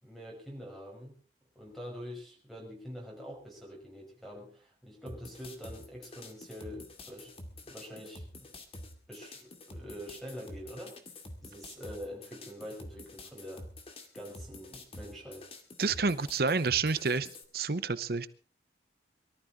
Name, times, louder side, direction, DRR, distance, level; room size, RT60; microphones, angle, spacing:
voice 1, 0.0-1.2 1.6-7.4 7.6-8.5 9.1-11.0 11.4-13.7 14.1-15.5, equal, ahead, 0 dB, 5.8 m, -45 dB
sound 1, 5.1-17.4, left 2 dB, 35° left, 2.3 m, -48 dB
voice 2, 15.8-17.3 17.5-18.3, right 4 dB, 60° right, 15 dB, 0.8 m, -29 dB
23.0 x 14.0 x 3.8 m, 0.38 s
head